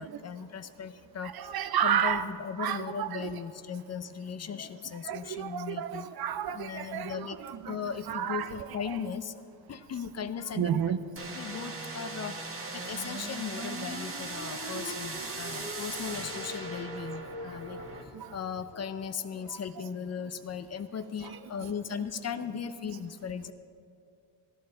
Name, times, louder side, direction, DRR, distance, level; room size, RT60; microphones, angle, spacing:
voice 1, 0.0-1.3 1.8-6.1 6.5-7.4 7.7-9.4 9.7-10.8 11.3-12.4 12.7-17.8 18.3-23.5, left 7 dB, 40° left, 11 dB, 0.6 m, -37 dB
voice 2, 1.2-2.3 2.6-3.4 5.0-9.0 10.6-11.0 14.6-14.8 15.5-15.6 18.1-18.4 19.5-19.6 21.2-21.7 22.0-22.1, right 9 dB, 60° right, 12 dB, 0.6 m, -32 dB
sound 1, 11.2-18.0, right 2 dB, 30° right, 1.4 m, -38 dB
13.5 x 12.5 x 3.8 m, 2.5 s
cardioid pair, 95°, 43 cm